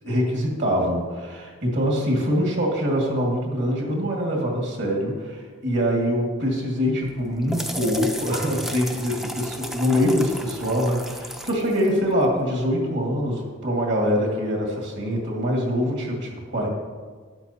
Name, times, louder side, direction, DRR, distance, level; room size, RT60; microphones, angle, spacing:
voice 1, 0.0-16.7, equal, 60° right, -1 dB, 2.0 m, -24 dB
sound 1, 7.0-12.6, equal, ahead, 0.5 m, -35 dB
12.0 x 9.6 x 2.8 m, 1.5 s
head